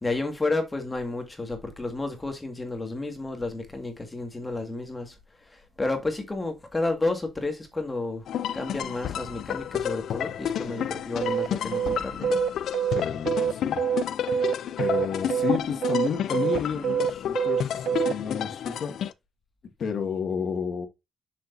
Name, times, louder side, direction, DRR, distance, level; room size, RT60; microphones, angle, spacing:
voice 1, 0.0-5.1 5.8-8.2 8.5-12.4, left 2 dB, 20° left, 1.8 m, -31 dB
sound 1, 8.3-19.1, left 10 dB, 75° left, 0.5 m, -31 dB
sound 2, 11.2-18.1, right 8 dB, 75° right, 0.4 m, -26 dB
voice 2, 12.9-13.8 14.3-19.0 19.8-20.9, left 6 dB, 60° left, 1.9 m, -31 dB
7.2 x 6.5 x 2.6 m
cardioid pair, 110°, 0 cm